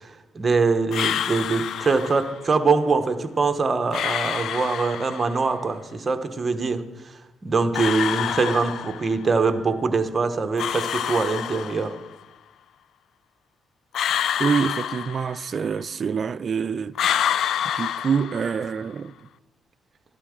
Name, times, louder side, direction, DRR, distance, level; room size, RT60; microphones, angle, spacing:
voice 1, 0.0-12.0, right 4 dB, 30° right, 0.9 m, -23 dB
sound 1, 0.9-2.4 3.9-5.4 7.7-9.3 10.6-12.1 13.9-15.7 16.9-18.8, left 9 dB, 70° left, 0.3 m, -27 dB
voice 2, 14.4-17.0 17.7-19.1, right 6 dB, 45° right, 0.3 m, -26 dB
12.5 x 11.5 x 3.7 m
cardioid pair, 90°, 0 cm